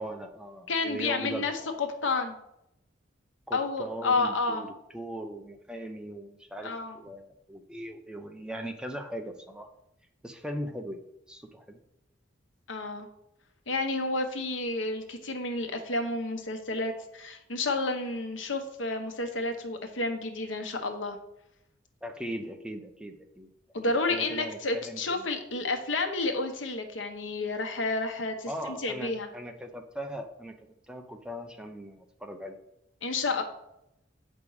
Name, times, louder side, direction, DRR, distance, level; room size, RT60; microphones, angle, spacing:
voice 1, 0.0-1.7 3.5-9.7 10.2-11.0 11.3-11.8 22.0-23.5 24.1-25.3 28.5-30.5 30.9-32.6, equal, 5° right, 5 dB, 0.6 m, -39 dB
voice 2, 0.7-1.5 1.8-2.4 3.5-4.7 6.6-6.9 12.7-13.1 13.7-21.2 23.7-28.5 28.8-29.3 33.0-33.4, left 3 dB, 90° left, 5 dB, 1.1 m, -30 dB
8.2 x 5.3 x 4.8 m, 0.81 s
head